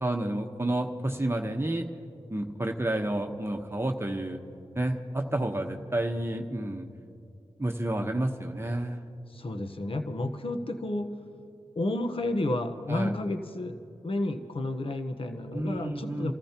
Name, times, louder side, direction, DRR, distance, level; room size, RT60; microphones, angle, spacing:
voice 1, 0.0-1.9 2.3-4.4 4.7-6.9 7.6-9.0 12.9-13.2 15.5-16.3, right 1 dB, 20° right, 3 dB, 1.1 m, -30 dB
voice 2, 9.3-11.1 11.8-13.7 14.0-16.3, left 2 dB, 50° left, 6 dB, 1.1 m, -31 dB
29.5 x 14.0 x 3.0 m, 2.7 s
cardioid pair, 45°, 12 cm